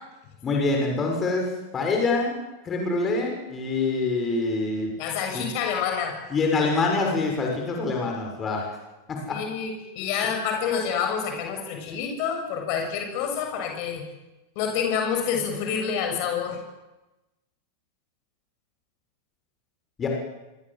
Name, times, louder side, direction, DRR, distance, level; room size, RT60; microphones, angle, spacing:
voice 1, 0.4-2.4 2.6-4.9 5.3-5.5 6.3-8.7 9.1-9.4 20.0-20.1, left 3 dB, 25° left, 1 dB, 6.6 m, -25 dB
voice 2, 5.0-6.2 9.3-14.0 14.6-16.6, left 7 dB, 45° left, 3 dB, 7.1 m, -28 dB
26.5 x 25.0 x 7.7 m, 1.1 s
figure-of-eight pair, 90°, 0 cm